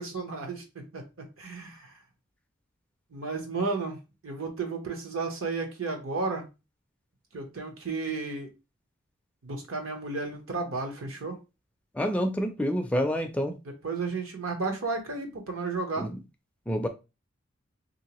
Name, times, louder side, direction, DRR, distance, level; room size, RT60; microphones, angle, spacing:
voice 1, 0.0-1.9 3.1-6.5 7.3-8.5 9.4-11.4 13.8-16.1, right 3 dB, 70° right, 0.9 m, -33 dB
voice 2, 11.9-13.5 16.0-16.1 16.7-16.9, equal, 5° left, 0.3 m, -27 dB
3.3 x 2.7 x 2.9 m
head